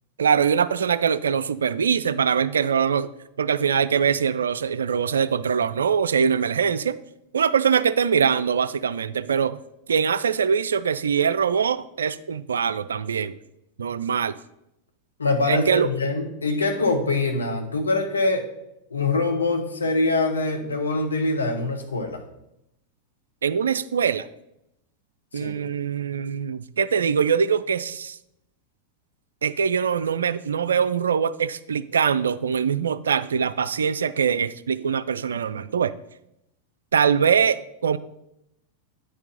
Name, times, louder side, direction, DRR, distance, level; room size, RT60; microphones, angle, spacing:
voice 1, 0.2-3.1 3.4-7.0 7.3-9.6 9.9-13.4 13.8-14.4 15.5-15.9 23.4-24.3 25.3-28.2 29.4-35.9 36.9-38.0, right 7 dB, 70° right, 15 dB, 0.3 m, -23 dB
voice 2, 15.2-18.5 18.9-22.2 25.3-25.5, left 3 dB, 75° left, 3 dB, 1.1 m, -24 dB
9.0 x 4.5 x 5.2 m, 0.83 s
figure-of-eight pair, 90°, 0 cm